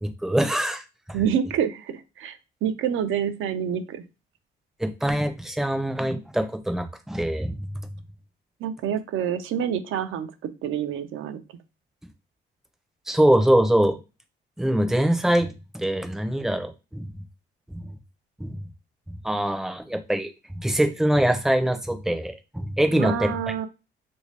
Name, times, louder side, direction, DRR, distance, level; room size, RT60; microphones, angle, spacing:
voice 1, 0.0-1.2 4.8-7.6 13.1-14.0 14.6-17.1 17.7-17.9 18.4-18.6 19.2-23.4, right 1 dB, ahead, 6 dB, 0.5 m, -24 dB
voice 2, 1.1-4.0 8.6-10.3 10.6-11.4 22.9-23.7, right 8 dB, 80° right, 10 dB, 0.5 m, -27 dB
3.1 x 2.6 x 3.2 m, 0.28 s
cardioid pair, 120°, 20 cm